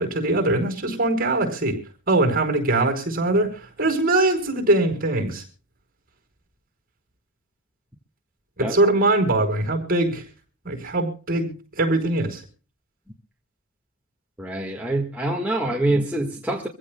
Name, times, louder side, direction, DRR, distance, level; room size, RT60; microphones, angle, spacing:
voice 1, 0.0-1.8 2.1-5.4 8.6-10.2 10.6-12.4, right 2 dB, 40° right, 5 dB, 4.6 m, -22 dB
voice 2, 14.4-16.7, right 1 dB, 5° right, -1 dB, 1.6 m, -25 dB
25.5 x 16.0 x 2.2 m, 0.37 s
head